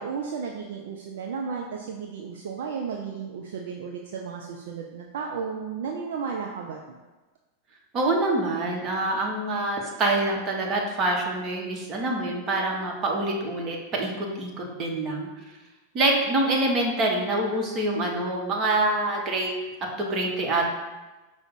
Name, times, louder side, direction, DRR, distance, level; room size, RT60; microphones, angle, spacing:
voice 1, 0.0-6.8, right 6 dB, 55° right, 1 dB, 0.4 m, -33 dB
voice 2, 7.9-15.3 15.9-19.5 20.0-20.7, right 2 dB, 30° right, -1 dB, 0.9 m, -26 dB
4.9 x 2.0 x 4.6 m, 1.2 s
figure-of-eight pair, 90°, 0 cm